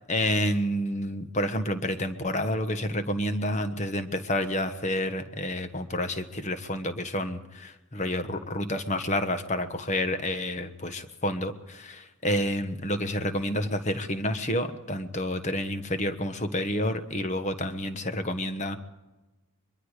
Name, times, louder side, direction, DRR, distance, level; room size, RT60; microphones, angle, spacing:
voice 1, 0.1-18.8, left 1 dB, 30° left, 9 dB, 1.3 m, -29 dB
23.5 x 23.0 x 5.0 m, 1.1 s
head